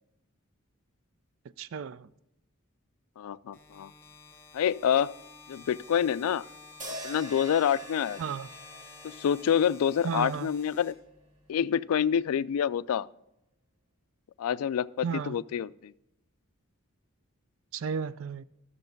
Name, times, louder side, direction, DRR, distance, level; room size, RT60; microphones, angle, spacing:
voice 1, 1.6-2.1 8.2-8.5 10.0-10.5 15.0-15.4 17.7-18.4, right 6 dB, 65° right, 0.4 m, -33 dB
voice 2, 3.2-3.9 4.5-5.1 5.5-6.4 7.0-8.2 9.0-10.9 11.5-13.1 14.4-15.9, left 8 dB, 85° left, 0.3 m, -27 dB
sound 1, 3.5-11.5, left 4 dB, 10° left, 1.2 m, -51 dB
sound 2, 6.8-11.1, right 1 dB, 35° right, 1.6 m, -45 dB
12.0 x 7.1 x 5.2 m
head